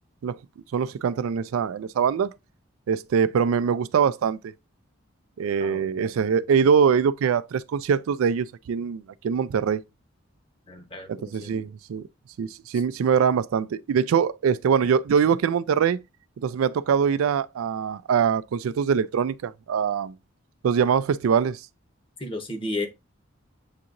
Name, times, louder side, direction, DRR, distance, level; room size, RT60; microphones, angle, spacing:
voice 1, 0.7-2.3 2.9-4.5 5.4-9.8 11.1-12.0 12.4-16.0 16.4-20.1 20.6-21.6, right 7 dB, 85° right, 0.3 m, -23 dB
voice 2, 5.6-5.9 10.7-11.6 12.7-12.8 22.2-22.9, left 2 dB, 25° left, 0.7 m, -33 dB
7.3 x 2.9 x 2.5 m
head